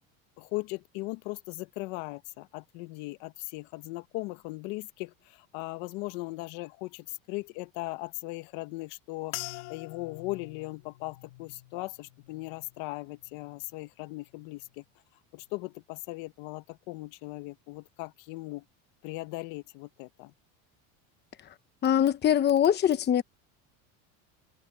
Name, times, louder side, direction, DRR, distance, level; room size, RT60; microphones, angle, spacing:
voice 1, 0.4-14.8 15.3-18.6 19.0-20.3, left 22 dB, 70° left, 1.3 m, -38 dB
sound 1, 9.3-13.9 14.2-14.8 15.4-15.7, left 23 dB, 90° left, 2.7 m, -46 dB
voice 2, 21.8-23.2, left 10 dB, 25° left, 0.9 m, -23 dB
cardioid pair, 140°, 40 cm